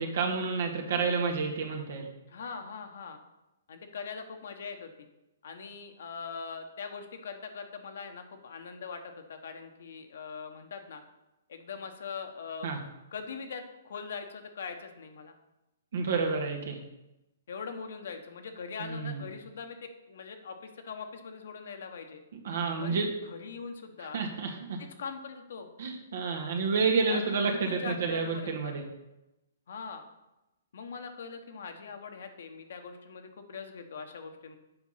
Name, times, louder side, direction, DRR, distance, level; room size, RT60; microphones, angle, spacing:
voice 1, 0.0-2.1 12.6-12.8 15.9-16.8 18.8-19.2 22.4-23.1 24.1-24.8 25.8-28.8, right 4 dB, 70° right, 1 dB, 1.8 m, -29 dB
voice 2, 2.3-3.2 3.7-4.9 5.4-11.0 11.5-12.7 13.1-15.3 17.5-22.2 22.8-24.3 25.0-25.7 27.1-27.2 27.5-28.7 29.7-30.1 30.7-34.6, left 5 dB, 70° left, 6 dB, 1.2 m, -42 dB
8.0 x 5.1 x 5.8 m, 0.96 s
hypercardioid pair, 135°, 0 cm